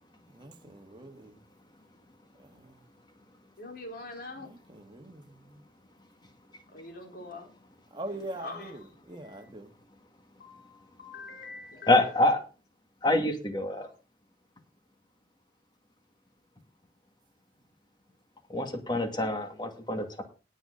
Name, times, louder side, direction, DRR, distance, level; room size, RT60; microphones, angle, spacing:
voice 1, 0.1-1.4 2.4-2.9 4.4-5.6 7.9-9.8, right 1 dB, 25° right, 1.7 m, -43 dB
voice 2, 3.6-4.5 6.7-7.5 8.4-8.7 9.1-9.5 10.4-12.1, left 2 dB, 55° left, 4.4 m, -44 dB
voice 3, 11.9-12.4 13.0-13.9 18.5-20.2, left 2 dB, 25° left, 2.3 m, -26 dB
18.5 x 8.1 x 4.0 m
head